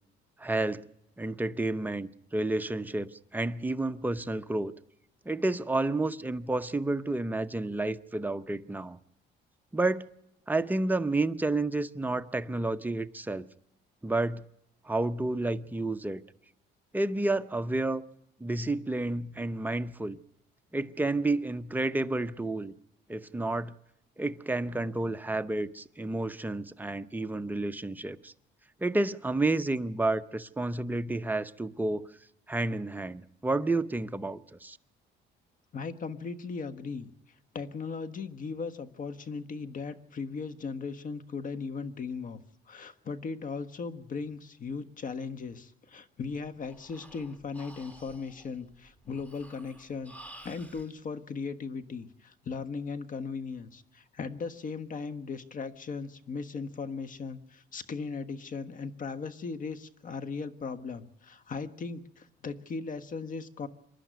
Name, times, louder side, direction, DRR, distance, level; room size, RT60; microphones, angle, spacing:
voice 1, 0.4-0.9 1.2-4.7 5.3-9.0 9.7-10.1 10.5-13.5 14.0-14.4 14.8-16.2 16.9-18.0 18.4-20.2 20.7-22.7 23.1-23.7 24.2-28.3 28.8-32.1 32.5-34.8, right 2 dB, 10° right, 0.8 m, -30 dB
voice 2, 35.7-37.1 37.5-42.4 42.7-50.1 50.4-63.7, left 4 dB, 45° left, 1.4 m, -38 dB
Breathing, 46.3-50.9, right 1 dB, 5° left, 2.3 m, -52 dB
26.5 x 11.5 x 9.3 m
cardioid pair, 100°, 19 cm